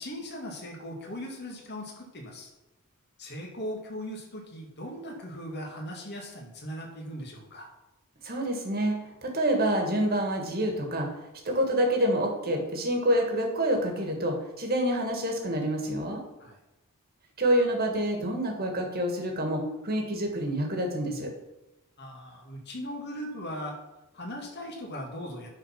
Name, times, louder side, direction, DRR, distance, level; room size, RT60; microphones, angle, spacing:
voice 1, 0.0-2.5 3.2-7.7 16.4-16.6 22.0-23.8 24.1-25.5, equal, 50° left, 0 dB, 2.1 m, -39 dB
voice 2, 8.2-9.0 9.2-11.1 11.5-16.2 17.4-21.3, right 1 dB, 45° right, 2 dB, 1.9 m, -27 dB
10.5 x 4.5 x 5.9 m, 0.97 s
head